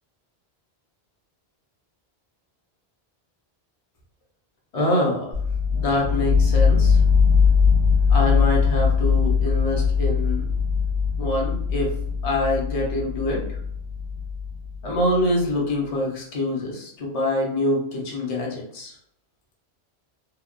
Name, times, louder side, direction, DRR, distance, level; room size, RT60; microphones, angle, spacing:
voice 1, 4.7-5.3 5.7-7.0 8.1-10.4 11.2-11.9 12.2-13.6 14.8-18.9, left 1 dB, 40° left, -2 dB, 0.7 m, -25 dB
sound 1, 5.3-15.1, left 5 dB, 75° right, 1.3 m, -21 dB
2.9 x 2.2 x 2.4 m, 0.67 s
omnidirectional pair, 1.1 m